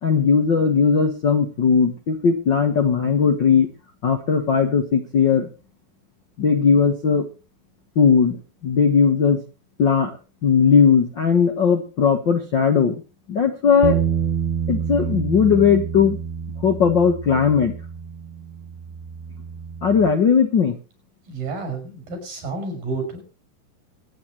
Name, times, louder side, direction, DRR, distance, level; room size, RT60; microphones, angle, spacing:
voice 1, 0.0-3.7 4.0-5.5 6.4-7.3 7.9-9.4 9.8-10.2 10.4-12.9 13.3-14.0 14.7-16.2 16.6-17.7 19.8-20.8, left 6 dB, 55° left, 5 dB, 1.3 m, -18 dB
sound 1, 13.8-20.1, right 8 dB, 90° right, 3.1 m, -28 dB
voice 2, 21.3-23.2, right 3 dB, 70° right, 5 dB, 7.7 m, -30 dB
24.5 x 9.7 x 3.1 m, 0.32 s
omnidirectional pair, 4.2 m